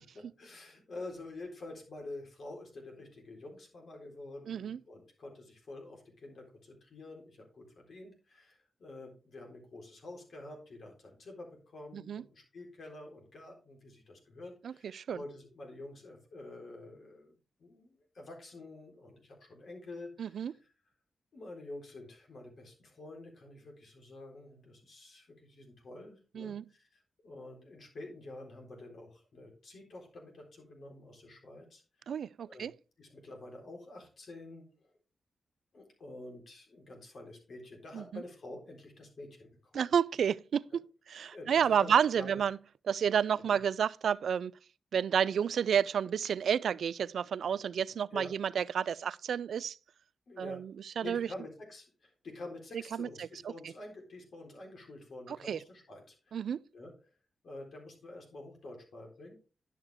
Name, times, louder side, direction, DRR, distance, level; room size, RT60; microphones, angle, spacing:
voice 1, 0.1-17.3 17.6-20.7 21.3-31.8 32.4-32.7 33.0-34.9 35.7-39.9 41.3-42.4 43.4-43.6 48.1-48.3 50.3-50.6 51.0-56.9 57.4-59.4, left 2 dB, 65° left, 3.9 m, -48 dB
voice 2, 4.5-4.8 11.9-12.2 14.6-15.2 20.2-20.5 26.4-26.6 32.1-32.7 37.9-38.2 39.7-40.8 41.1-42.6 42.9-44.5 44.9-49.8 50.4-51.3 53.0-53.3 55.3-55.6 56.3-56.6, right 8 dB, 75° right, 0.3 m, -30 dB
10.5 x 6.4 x 3.5 m
cardioid pair, 55°, 0 cm